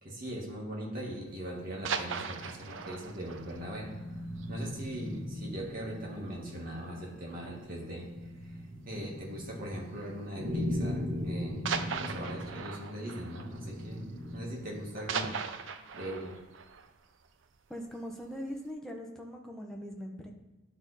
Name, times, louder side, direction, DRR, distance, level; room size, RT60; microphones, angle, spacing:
voice 1, 0.0-3.9 4.5-8.1 8.4-8.5 8.9-14.0 14.3-15.4 15.9-16.4, equal, 45° right, -3 dB, 1.8 m, -40 dB
sound 1, 1.6-5.1 5.5-5.6 6.0-6.2 6.5-6.6 7.4-7.8 9.1-9.3 10.2-10.3 11.6-14.4 14.7-17.8 18.3-18.4, right 6 dB, 60° right, 0.5 m, -39 dB
sound 2, 2.6-15.0, left 1 dB, 25° right, 1.9 m, -39 dB
voice 2, 17.7-20.3, equal, ahead, 0 dB, 0.7 m, -41 dB
10.5 x 3.6 x 4.1 m, 1.2 s
head